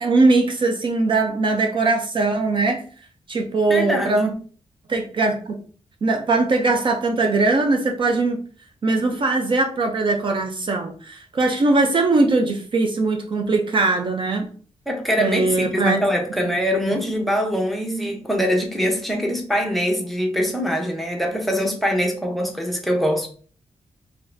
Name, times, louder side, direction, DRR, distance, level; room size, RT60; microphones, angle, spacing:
voice 1, 0.0-2.8 3.3-4.3 4.9-5.6 6.0-8.4 8.8-14.5 15.2-16.0 16.4-16.6, right 3 dB, 45° right, 0.5 m, -20 dB
voice 2, 3.7-4.3 14.9-23.3, equal, ahead, 0.7 m, -23 dB
3.9 x 3.3 x 2.6 m
wide cardioid pair, 140°, 12 cm